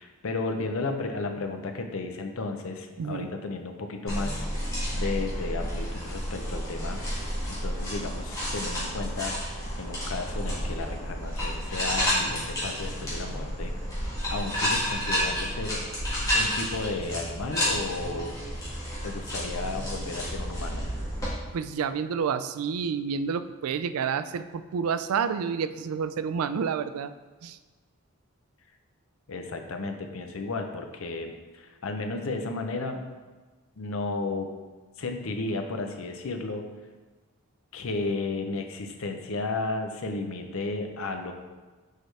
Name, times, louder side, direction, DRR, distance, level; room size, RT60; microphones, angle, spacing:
voice 1, 0.0-7.0 7.4-13.7 14.3-15.8 16.3-18.3 19.0-20.8 29.3-33.0 33.8-34.5 35.0-36.7 37.7-41.3, left 3 dB, 75° left, 5 dB, 0.6 m, -33 dB
voice 2, 3.0-3.3 21.5-27.1 27.4-27.6, right 6 dB, 90° right, 12 dB, 0.3 m, -29 dB
sound 1, 4.1-21.3, equal, 15° left, 1.6 m, -30 dB
6.5 x 4.7 x 3.3 m, 1.3 s
head